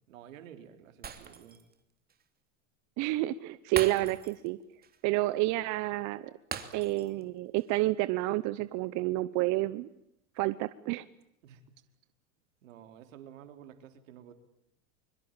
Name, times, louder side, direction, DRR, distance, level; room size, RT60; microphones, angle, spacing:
voice 1, 0.1-1.6 11.4-11.6 12.6-14.3, right 9 dB, 80° right, 8 dB, 3.7 m, -51 dB
Shatter, 1.0-1.7 2.1-2.2 3.7-4.5 4.8-5.0 6.5-7.2 7.6-7.7, right 7 dB, 25° right, 2.9 m, -40 dB
voice 2, 3.0-4.6 5.0-6.3 6.7-9.9 10.4-11.1, right 18 dB, 45° right, 15 dB, 0.9 m, -29 dB
24.5 x 23.0 x 8.9 m, 0.78 s
supercardioid pair, 115°, 39 cm